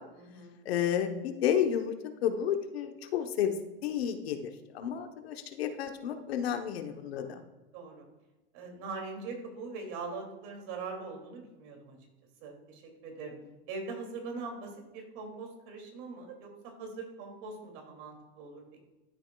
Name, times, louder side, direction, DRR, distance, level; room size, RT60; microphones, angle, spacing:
voice 1, 0.1-0.5 7.2-7.5 7.7-8.1 8.5-12.0 12.4-13.4 13.7-18.8, right 4 dB, 55° right, 2 dB, 2.5 m, -42 dB
voice 2, 0.6-1.9 2.2-3.6 3.8-7.4, left 9 dB, 85° left, 7 dB, 1.0 m, -31 dB
12.5 x 6.3 x 2.3 m, 1.1 s
supercardioid pair, 130°, 30 cm